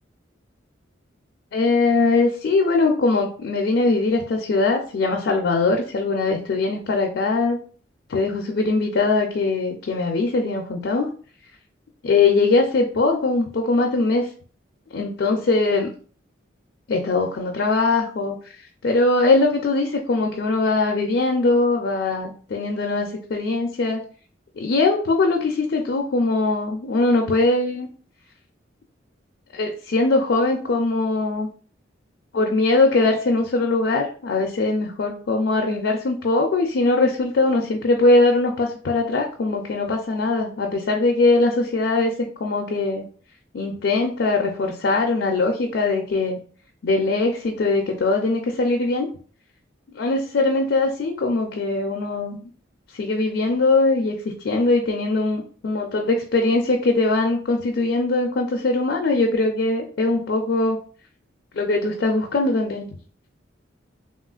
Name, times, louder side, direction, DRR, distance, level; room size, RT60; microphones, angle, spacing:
voice 1, 1.5-7.6 8.1-11.1 12.0-14.3 14.9-15.9 16.9-18.4 18.8-24.0 24.6-27.9 29.5-31.5 32.3-43.0 43.5-46.4 46.8-49.1 49.9-52.4 52.9-60.8 61.5-62.9, left 3 dB, 65° left, 1 dB, 0.4 m, -21 dB
3.2 x 2.4 x 2.3 m, 0.42 s
head